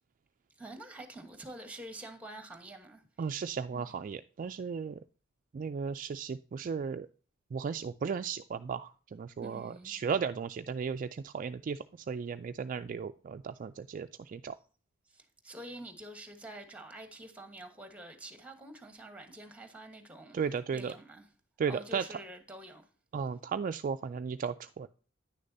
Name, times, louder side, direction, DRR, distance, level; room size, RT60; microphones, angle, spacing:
voice 1, 0.6-3.4 3.7-3.9 9.4-9.9 15.1-20.4 20.7-21.3 21.7-22.9, right 1 dB, 5° right, 1.2 m, -47 dB
voice 2, 3.2-5.0 5.5-7.1 7.5-11.8 12.1-14.5 20.3-20.9 21.6-22.0 23.1-24.9, right 6 dB, 40° right, 0.3 m, -35 dB
9.8 x 6.5 x 2.6 m
head